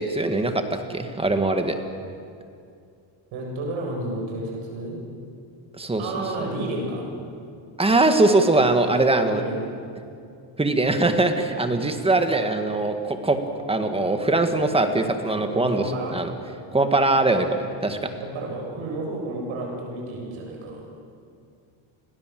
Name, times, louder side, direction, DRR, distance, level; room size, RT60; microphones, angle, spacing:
voice 1, 0.0-1.8 5.8-6.5 7.8-9.4 10.6-13.4 13.7-16.3 16.7-18.1, right 2 dB, 10° right, 6 dB, 1.9 m, -22 dB
voice 2, 3.3-5.0 6.0-7.1 9.3-9.7 15.4-16.2 18.1-20.8, right 2 dB, 80° right, 0 dB, 7.9 m, -31 dB
30.0 x 22.0 x 7.8 m, 2.4 s
cardioid pair, 155°, 47 cm